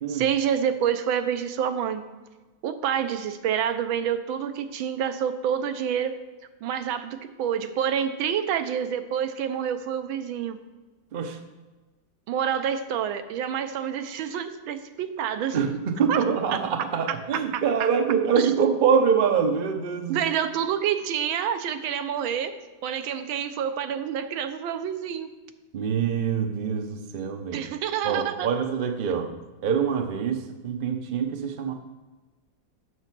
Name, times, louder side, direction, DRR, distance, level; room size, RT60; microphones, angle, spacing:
voice 1, 0.1-2.1 2.6-6.2 6.6-10.6 12.3-15.6 16.1-16.2 16.5-16.6 17.1-17.9 18.4-18.5 20.1-22.5 22.8-25.3 27.5-28.5, right 8 dB, 85° right, 9 dB, 1.5 m, -28 dB
voice 2, 15.5-20.2 25.7-27.6 28.0-29.3 29.6-31.7, right 6 dB, 65° right, 6 dB, 0.5 m, -25 dB
7.8 x 6.7 x 6.0 m, 1.3 s
omnidirectional pair, 2.1 m